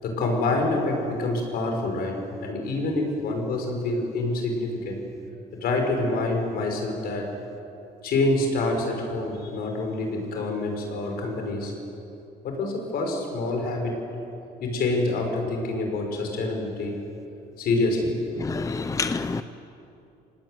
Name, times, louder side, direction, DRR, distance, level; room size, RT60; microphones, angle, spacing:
voice 1, 0.0-5.0 5.6-7.3 8.0-11.7 12.4-14.0 14.6-17.0 17.6-18.1, left 2 dB, 65° left, 6.4 m, -26 dB
voice 2, 18.4-19.4, left 4 dB, 20° left, 0.7 m, -27 dB
25.0 x 19.0 x 9.6 m
cardioid pair, 110°, 17 cm